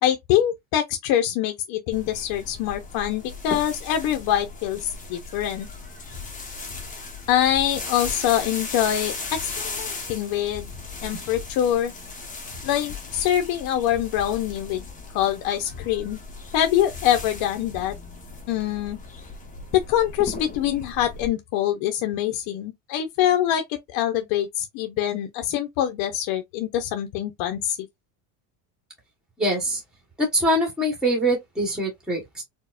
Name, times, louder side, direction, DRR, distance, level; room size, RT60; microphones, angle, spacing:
voice 1, 0.0-5.7 7.3-10.7 11.0-11.9 12.6-14.9 15.1-16.2 16.5-17.9 18.5-19.0 19.7-27.9, left 11 dB, 55° left, 0.7 m, -24 dB
Rustling foliage, 1.9-21.3, left 3 dB, 20° left, 1.0 m, -37 dB
voice 2, 29.4-29.8 30.2-32.4, right 1 dB, ahead, 1.2 m, -23 dB
4.5 x 2.1 x 2.4 m
cardioid pair, 140°, 44 cm